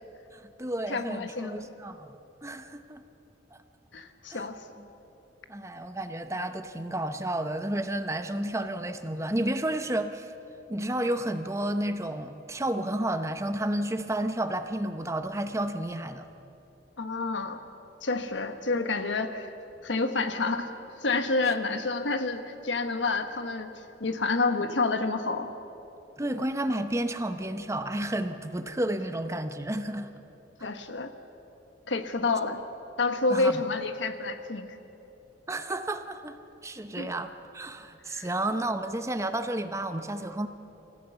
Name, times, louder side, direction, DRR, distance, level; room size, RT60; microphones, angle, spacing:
voice 1, 0.3-2.2 2.4-3.0 4.3-4.4 5.5-10.3 10.7-16.2 26.2-30.1 33.3-33.6 35.5-36.4 36.6-40.5, right 1 dB, 15° right, 9 dB, 0.8 m, -31 dB
voice 2, 0.9-1.7 3.9-4.6 17.0-17.6 18.0-19.5 19.8-20.7 21.0-23.7 24.0-25.5 30.6-31.1 31.9-32.6 33.0-34.7 37.0-37.1 38.1-38.3, left 3 dB, 85° left, 8 dB, 1.3 m, -28 dB
26.0 x 15.0 x 6.9 m, 2.9 s
head